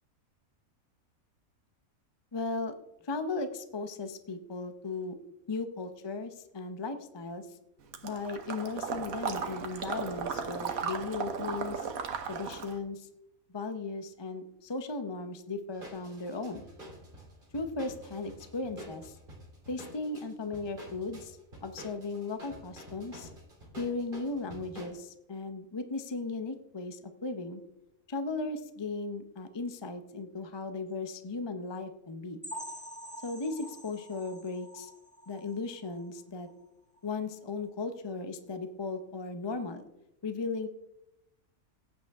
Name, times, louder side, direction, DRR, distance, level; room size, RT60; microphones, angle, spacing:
voice 1, 2.3-2.7 3.1-5.1 5.5-7.4 8.0-11.8 12.3-13.1 13.5-16.6 17.5-19.1 19.7-23.3 23.8-27.6 28.1-32.4 33.2-34.9 35.3-36.5 37.0-39.8 40.2-40.7, left 3 dB, 30° left, 8 dB, 0.5 m, -36 dB
Water / Liquid, 7.9-12.8, right 6 dB, 75° right, 1.5 m, -36 dB
sound 1, 15.7-24.9, equal, 35° right, 3.5 m, -48 dB
sound 2, 32.4-36.1 36.4-36.6 37.0-37.1 37.5-37.6, equal, 5° left, 1.5 m, -46 dB
16.0 x 9.0 x 3.5 m, 0.87 s
omnidirectional pair, 1.5 m